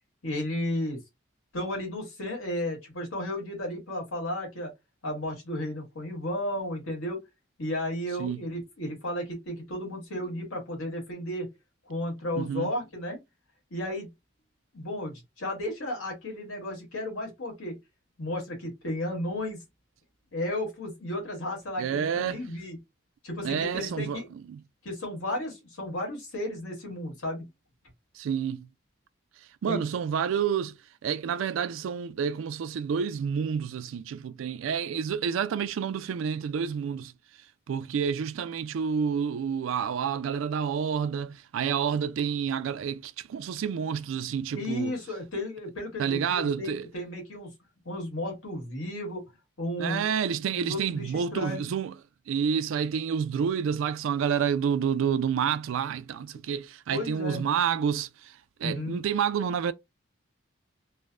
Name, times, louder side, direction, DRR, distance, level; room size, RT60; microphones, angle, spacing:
voice 1, 0.2-1.0 1.5-4.7 5.0-7.2 7.6-11.5 11.9-13.2 13.7-14.1 14.7-17.8 18.2-19.6 20.3-22.8 23.2-24.2 24.8-27.5 29.7-29.8 44.5-47.5 47.8-49.2 49.6-50.1 50.5-51.7 56.9-57.4 58.6-59.0, left 1 dB, 90° left, 1.6 m, -33 dB
voice 2, 12.4-12.7 21.8-22.4 23.4-24.2 24.5-24.6 28.1-28.7 29.6-30.8 31.0-37.1 37.7-44.9 46.0-46.9 49.8-51.9 52.3-59.7, right 7 dB, 75° right, 0.3 m, -29 dB
3.2 x 2.1 x 2.3 m
head